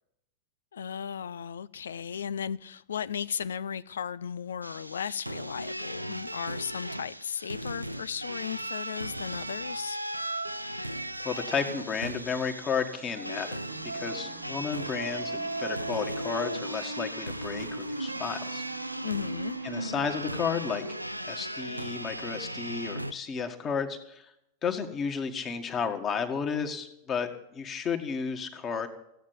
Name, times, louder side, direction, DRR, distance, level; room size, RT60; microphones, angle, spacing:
voice 1, 0.7-10.0 19.0-19.6, left 8 dB, 65° left, 0.5 m, -35 dB
sound 1, 4.6-23.1, right 1 dB, 90° right, 0.6 m, -36 dB
voice 2, 11.2-13.6 13.9-18.6 19.6-20.8 21.2-24.3 24.6-28.9, left 6 dB, 25° left, 2.2 m, -32 dB
sound 2, 13.6-21.0, right 9 dB, 55° right, 1.2 m, -49 dB
16.0 x 9.1 x 9.9 m
figure-of-eight pair, 90°, 0 cm